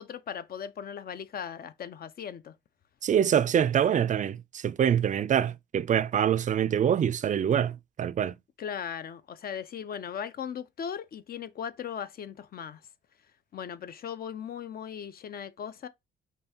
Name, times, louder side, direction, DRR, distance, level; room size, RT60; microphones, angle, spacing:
voice 1, 0.0-2.5 8.6-12.8 13.5-15.9, left 8 dB, 50° left, 0.6 m, -38 dB
voice 2, 3.0-8.4, right 9 dB, 40° right, 0.4 m, -25 dB
5.2 x 2.3 x 2.8 m
cardioid pair, 90°, 20 cm